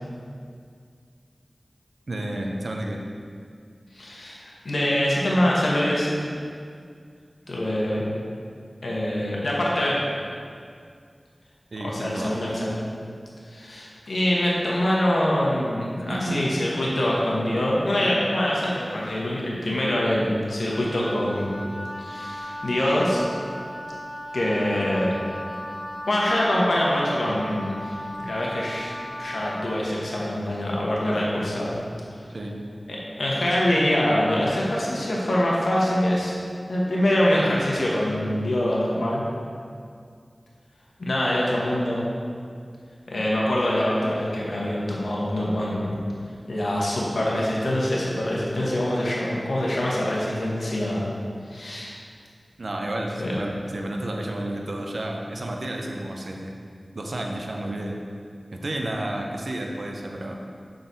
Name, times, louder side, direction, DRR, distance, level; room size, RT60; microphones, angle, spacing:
voice 1, 2.1-3.0 11.7-12.4 16.0-16.5 27.2-27.5 32.3-32.6 52.6-56.6 56.9-58.0 58.5-60.4, right 1 dB, 75° right, 1 dB, 0.6 m, -31 dB
voice 2, 3.9-6.1 7.5-8.0 8.8-9.9 11.8-12.8 13.5-21.6 22.0-23.2 24.3-25.1 26.1-28.9 29.2-31.7 32.9-36.3 36.7-39.2 41.0-42.1 43.1-46.0 46.5-51.1 51.5-51.9 53.2-53.3, left 1 dB, 90° left, -5 dB, 1.0 m, -24 dB
Wind instrument woodwind instrument, 20.7-29.9, left 1 dB, 25° left, 1.1 m, -36 dB
6.1 x 3.9 x 4.0 m, 2.2 s
wide cardioid pair, 40°, 0 cm